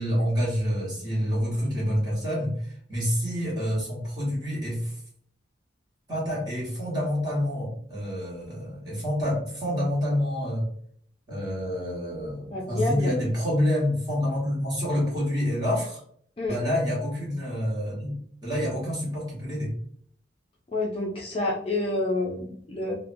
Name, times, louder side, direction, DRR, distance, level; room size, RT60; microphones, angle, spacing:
voice 1, 0.0-5.0 6.1-10.7 11.3-16.0 16.5-18.1 18.4-19.7, equal, 20° right, -7 dB, 1.1 m, -27 dB
voice 2, 12.5-13.1 16.4-16.6 20.7-22.9, left 2 dB, 30° left, -3 dB, 0.4 m, -28 dB
2.7 x 2.1 x 2.5 m, 0.62 s
head